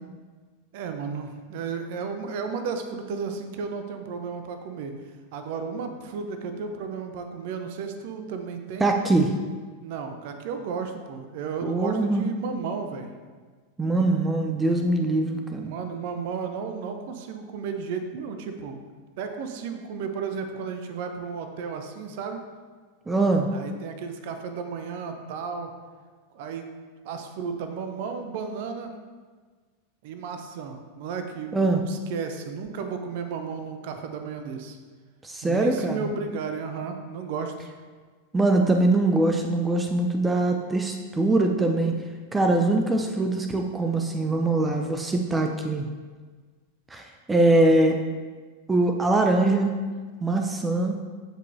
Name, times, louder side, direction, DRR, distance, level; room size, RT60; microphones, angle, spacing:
voice 1, 0.7-4.9 5.3-8.9 9.8-13.1 15.6-18.8 19.2-22.4 23.5-25.7 26.3-26.7 27.0-28.9 30.0-34.8 35.4-37.7, right 5 dB, 50° right, 6 dB, 0.8 m, -33 dB
voice 2, 8.8-9.3 11.6-12.2 13.8-15.8 23.1-23.5 31.5-31.8 35.2-36.1 38.3-41.9 42.3-45.9 46.9-48.0 48.7-49.7 50.2-51.0, right 2 dB, 10° right, 3 dB, 0.6 m, -22 dB
15.0 x 5.3 x 2.7 m, 1.5 s
figure-of-eight pair, 90°, 0 cm